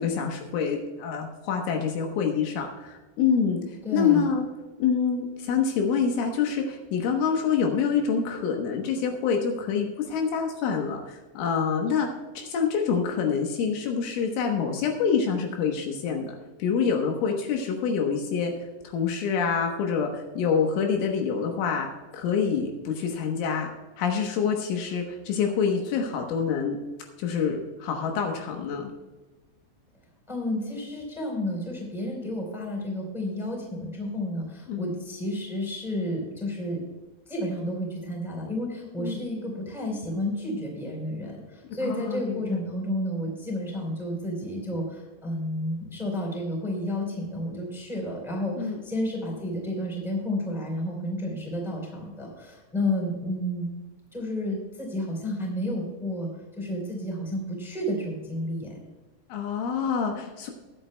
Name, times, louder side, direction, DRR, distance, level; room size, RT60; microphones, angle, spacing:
voice 1, 0.0-4.5 4.8-12.1 12.4-16.3 16.6-18.5 18.9-21.9 22.1-23.7 24.0-26.8 27.2-28.9 34.7-34.9 39.0-39.3 41.8-42.4 48.6-48.8 59.3-60.5, left 6 dB, 75° left, 2 dB, 3.5 m, -26 dB
voice 2, 3.8-4.3 30.3-36.8 37.3-53.7 54.1-56.3 56.6-58.8, left 1 dB, ahead, -1 dB, 2.9 m, -31 dB
21.5 x 9.4 x 2.3 m, 1.2 s
omnidirectional pair, 5.9 m